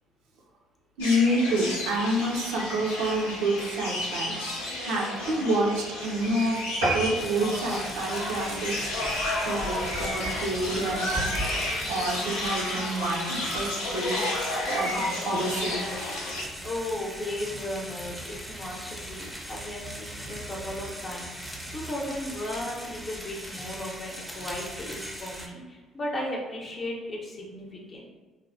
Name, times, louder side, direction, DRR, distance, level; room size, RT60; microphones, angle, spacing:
sound 1, 1.0-16.4, left 1 dB, 80° left, 0.5 m, -32 dB
voice 1, 1.0-4.4 4.8-6.6 6.9-8.8 9.4-11.3 11.9-14.3 14.7-15.9, right 1 dB, 70° right, -1 dB, 0.4 m, -28 dB
sound 2, 6.8-9.6 10.0-10.2 10.7-10.8 11.1-11.2 11.4-11.5, right 1 dB, 90° right, 0.8 m, -31 dB
sound 3, 7.2-25.5, right 1 dB, ahead, 0.6 m, -39 dB
voice 2, 16.6-28.1, left 1 dB, 40° left, -1 dB, 0.7 m, -36 dB
3.2 x 2.3 x 2.5 m, 1.4 s
hypercardioid pair, 50°, 0 cm